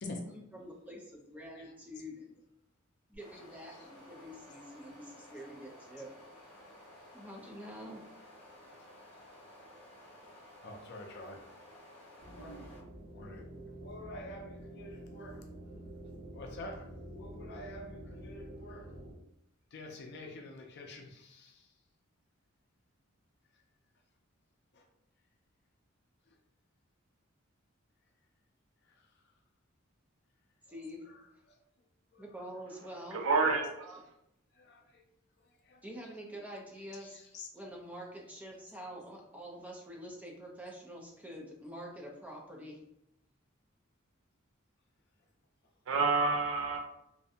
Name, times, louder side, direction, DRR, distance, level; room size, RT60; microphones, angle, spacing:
voice 1, 0.3-2.4 3.1-6.1 7.1-8.0 30.7-31.0 32.2-33.2 35.8-42.8, equal, 10° right, -2 dB, 0.5 m, -46 dB
sound 1, 3.1-12.8, left 1 dB, 30° left, 0.9 m, -55 dB
voice 2, 10.6-11.4 12.3-12.7 13.1-13.4 13.8-15.4 16.4-16.8 17.1-18.9 19.7-21.5 32.1-32.2 34.6-34.8 35.7-35.8 37.3-37.5, left 2 dB, 55° left, 3 dB, 0.5 m, -46 dB
sound 2, 12.2-19.1, right 1 dB, 50° right, 1.1 m, -48 dB
voice 3, 33.1-34.0 45.9-46.8, right 4 dB, 70° right, 2 dB, 0.5 m, -29 dB
2.6 x 2.1 x 2.7 m, 0.80 s
head